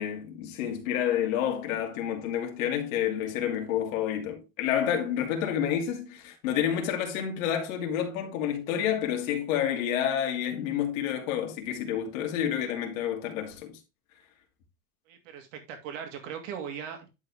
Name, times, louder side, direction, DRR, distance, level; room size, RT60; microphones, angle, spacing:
voice 1, 0.0-13.7, left 9 dB, 65° left, 2.7 m, -29 dB
voice 2, 15.1-17.1, right 8 dB, 55° right, 2.7 m, -39 dB
11.0 x 4.9 x 3.5 m
supercardioid pair, 170°, 45 cm